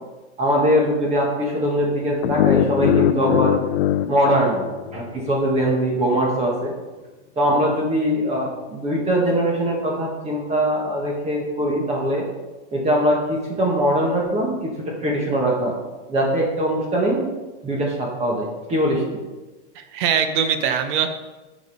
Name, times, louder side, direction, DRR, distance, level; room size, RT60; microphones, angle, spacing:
voice 1, 0.4-3.6 4.1-6.7 7.3-12.2 12.7-14.7 15.0-15.7 16.1-17.3 17.6-19.2, equal, 20° right, -2 dB, 1.5 m, -21 dB
sound 1, 2.2-5.3, left 12 dB, 60° left, 0.4 m, -21 dB
voice 2, 19.7-21.1, right 7 dB, 45° right, 8 dB, 0.8 m, -22 dB
7.9 x 5.2 x 5.4 m, 1.2 s
supercardioid pair, 150°, 34 cm